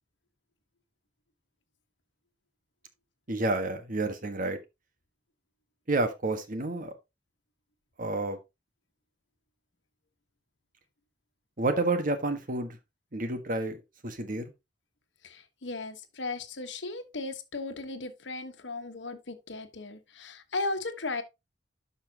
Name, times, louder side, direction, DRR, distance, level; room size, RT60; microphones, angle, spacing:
voice 1, 3.3-4.6 5.9-6.9 8.0-8.4 11.6-12.8 13.1-14.5, right 2 dB, 50° right, 1.4 m, -30 dB
voice 2, 15.2-21.2, left 3 dB, 75° left, 1.2 m, -36 dB
11.5 x 5.8 x 2.8 m
head